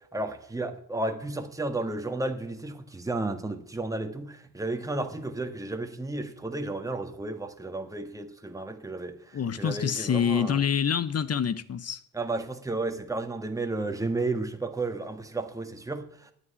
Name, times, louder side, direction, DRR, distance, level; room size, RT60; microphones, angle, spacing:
voice 1, 0.1-10.6 12.1-16.3, right 2 dB, 10° right, 1.6 m, -33 dB
voice 2, 9.3-12.0, left 7 dB, 35° left, 0.9 m, -26 dB
9.6 x 8.2 x 9.7 m
hypercardioid pair, 60°, 41 cm